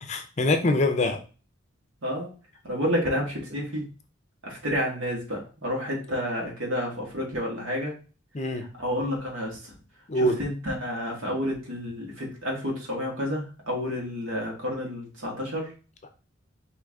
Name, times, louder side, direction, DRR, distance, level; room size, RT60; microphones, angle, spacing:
voice 1, 0.0-1.2 8.3-8.6 10.1-10.4, left 1 dB, 30° left, 6 dB, 0.5 m, -24 dB
voice 2, 2.6-3.9 4.4-7.9 8.8-9.6 10.4-15.7, equal, 70° right, -1 dB, 1.8 m, -30 dB
4.7 x 3.0 x 3.5 m, 0.35 s
head